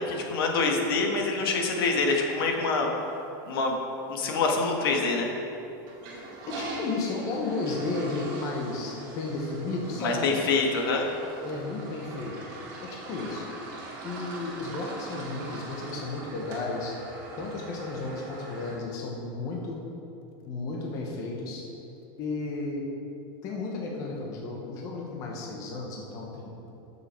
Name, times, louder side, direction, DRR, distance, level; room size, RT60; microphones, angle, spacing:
voice 1, 0.0-2.9 3.5-3.7 4.1-5.3 10.0-11.1, left 3 dB, 85° left, 1 dB, 1.8 m, -25 dB
Toilet flush, 5.8-18.8, right 2 dB, 35° right, 2.0 m, -42 dB
voice 2, 6.5-10.4 11.4-12.4 12.8-13.5 14.0-16.9 17.4-19.8 20.5-21.6 22.2-22.8 23.4-26.5, left 3 dB, 30° left, -2 dB, 1.2 m, -33 dB
12.5 x 6.9 x 4.5 m, 2.8 s
supercardioid pair, 175°, 12 cm